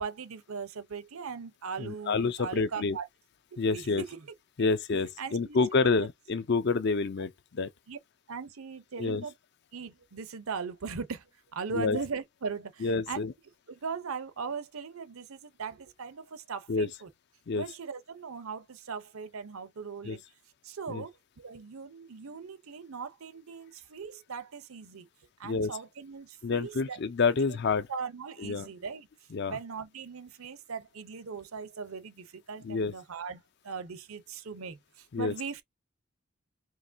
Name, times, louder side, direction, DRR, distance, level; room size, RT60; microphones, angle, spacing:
voice 1, 0.0-3.1 3.7-4.3 4.6-4.7 5.2-5.6 5.8-6.1 7.9-8.0 8.3-9.3 9.7-11.3 11.5-13.2 13.7-17.1 17.5-20.2 20.6-25.1 25.4-27.0 27.9-29.1 29.5-35.6, right 5 dB, 80° right, 0.7 m, -39 dB
voice 2, 1.8-3.0 3.6-4.0 4.6-7.7 9.0-9.2 11.7-12.0 12.8-13.3 16.7-16.9 17.5-17.6 20.0-20.2 20.9-21.0 25.4-25.7 26.4-27.9 28.4-28.7 29.3-29.6 32.6-32.9 35.1-35.3, left 4 dB, 50° left, 0.5 m, -28 dB
4.7 x 3.0 x 2.6 m
head